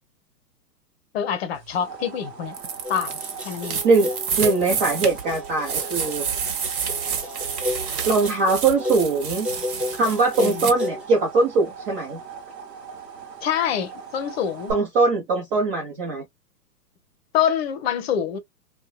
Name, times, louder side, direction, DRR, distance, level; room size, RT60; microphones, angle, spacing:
voice 1, 1.1-2.6 2.9-3.2 3.4-3.8 10.4-10.7 13.4-14.7 17.3-18.4, left 9 dB, 40° left, 0.7 m, -25 dB
sound 1, 1.5-14.7, right 6 dB, 90° right, 0.8 m, -41 dB
sound 2, 2.5-10.7, right 6 dB, 60° right, 1.2 m, -29 dB
sound 3, 2.8-11.0, left 2 dB, ahead, 0.8 m, -33 dB
voice 2, 4.4-6.2 8.1-9.5 10.0-12.2 14.7-16.2, right 3 dB, 35° right, 0.9 m, -21 dB
2.8 x 2.3 x 2.4 m
hypercardioid pair, 120°, 48 cm